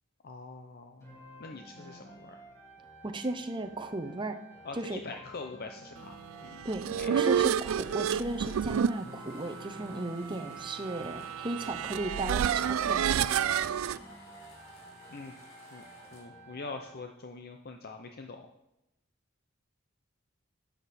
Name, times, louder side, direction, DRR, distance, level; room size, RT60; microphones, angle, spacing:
voice 1, 0.2-1.1 1.4-2.4 4.6-6.2 6.4-7.4 15.1-15.3 15.7-15.8 16.1-18.5, left 3 dB, 50° left, 4 dB, 0.7 m, -44 dB
sound 1, 1.0-17.0, right 1 dB, 15° left, 4.7 m, -52 dB
voice 2, 3.0-4.4 4.7-5.0 6.6-13.4, right 2 dB, 25° right, 6 dB, 0.8 m, -35 dB
sound 2, 6.4-14.0, right 8 dB, 85° right, 0.3 m, -30 dB
sound 3, 7.3-16.2, left 1 dB, 75° left, 3.5 m, -54 dB
12.0 x 8.4 x 4.3 m, 0.87 s
head